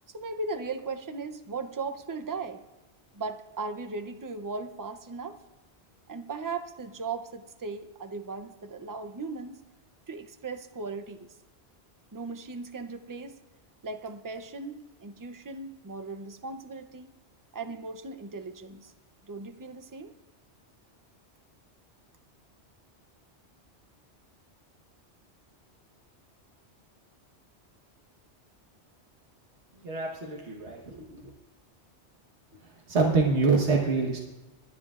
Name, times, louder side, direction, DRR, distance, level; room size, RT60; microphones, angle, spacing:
voice 1, 0.1-2.6 3.1-5.4 6.1-9.6 10.1-11.4 12.1-13.4 13.8-17.1 17.5-18.9 19.2-20.1, right 4 dB, 25° right, 9 dB, 0.5 m, -37 dB
voice 2, 29.8-31.2 32.9-34.2, right 4 dB, 75° right, -1 dB, 1.6 m, -25 dB
26.5 x 10.0 x 2.4 m, 1.1 s
omnidirectional pair, 1.2 m